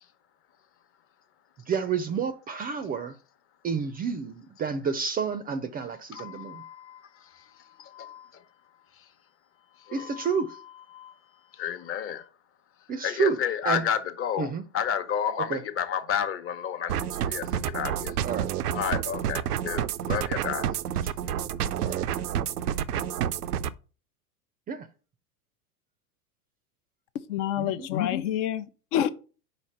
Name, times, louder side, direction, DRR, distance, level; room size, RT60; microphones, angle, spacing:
voice 1, 1.7-3.2 3.6-6.6 9.9-10.6 12.9-13.4 13.6-13.8 14.4-14.6 15.5-15.6 18.2-18.5 21.8-22.4 24.7-24.9 27.6-27.9, right 6 dB, 20° right, 0.5 m, -30 dB
voice 2, 6.1-8.4 8.9-9.1 9.8-11.2 11.5-12.3 13.0-18.2 18.7-20.7, left 8 dB, 30° left, 0.9 m, -32 dB
sound 1, 16.9-23.7, right 10 dB, 90° right, 0.5 m, -29 dB
voice 3, 27.3-29.1, left 11 dB, 55° left, 0.7 m, -27 dB
5.0 x 4.1 x 5.6 m
hypercardioid pair, 100°, 45 cm